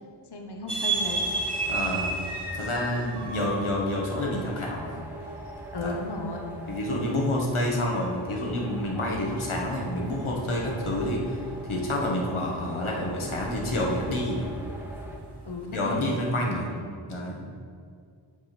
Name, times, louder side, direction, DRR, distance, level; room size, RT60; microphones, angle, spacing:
voice 1, 0.2-1.3 5.7-6.5 15.4-16.2 16.6-16.9, left 2 dB, 55° left, 2 dB, 1.0 m, -35 dB
sound 1, 0.7-16.3, right 3 dB, 55° right, 1.1 m, -36 dB
sound 2, 0.9-15.2, equal, 5° right, 0.8 m, -42 dB
voice 2, 1.7-2.2 2.5-5.0 5.8-5.9 6.7-11.4 11.7-14.5 15.7-16.7 17.1-17.5, left 1 dB, 80° left, -1 dB, 1.6 m, -28 dB
7.3 x 5.1 x 5.9 m, 2.2 s
wide cardioid pair, 70°, 49 cm